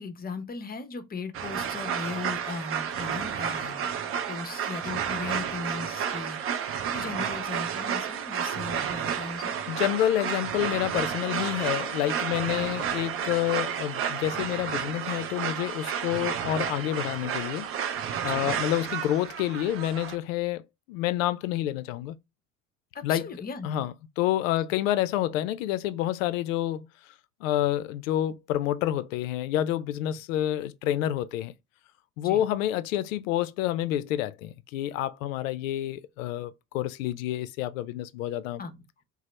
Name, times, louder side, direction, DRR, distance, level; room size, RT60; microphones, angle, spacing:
voice 1, 0.0-9.6 18.3-18.4 22.9-23.7 32.2-32.4 38.6-38.8, left 4 dB, 20° left, 0.6 m, -38 dB
sound 1, 1.3-20.2, right 8 dB, 35° right, 0.5 m, -31 dB
voice 2, 9.7-17.7 18.2-20.6 20.9-22.2 23.0-23.3 23.6-26.9 27.4-31.5 32.2-38.6, left 13 dB, 70° left, 0.5 m, -28 dB
2.7 x 2.0 x 3.1 m
figure-of-eight pair, 60°, 41 cm